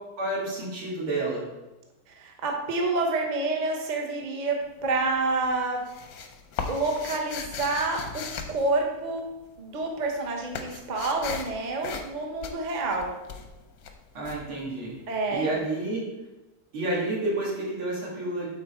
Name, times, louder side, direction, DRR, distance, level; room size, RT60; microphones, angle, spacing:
voice 1, 0.2-1.4 14.1-15.0 15.3-16.0 16.7-18.5, right 2 dB, 85° right, -5 dB, 3.1 m, -29 dB
voice 2, 2.1-5.8 6.7-9.3 9.6-13.1 15.1-15.5, right 3 dB, 35° right, 1 dB, 0.7 m, -28 dB
sound 1, 4.6-5.1 5.4-9.5 9.8-15.3, left 5 dB, 65° left, 1.0 m, -38 dB
8.8 x 4.2 x 4.4 m, 1.0 s
omnidirectional pair, 2.2 m